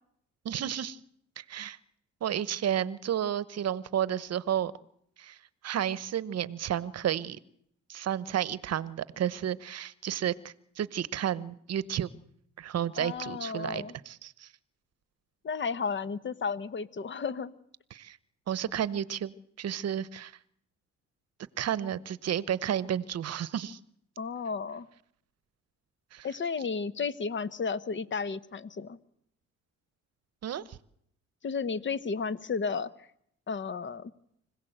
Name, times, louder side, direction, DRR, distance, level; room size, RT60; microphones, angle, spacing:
voice 1, 0.4-1.0 1.4-1.8 2.2-4.7 5.2-5.4 5.6-7.4 7.9-12.1 12.6-14.5 17.9-18.2 18.5-20.3 21.6-23.8 26.1-26.3 30.4-30.8, right 10 dB, 55° right, 18 dB, 0.9 m, -32 dB
voice 2, 13.0-13.9 15.4-17.5 24.2-24.9 26.2-29.0 31.4-32.9 33.5-34.1, left 5 dB, 40° left, 15 dB, 1.0 m, -33 dB
25.5 x 16.5 x 7.9 m, 0.73 s
cardioid pair, 90°, 30 cm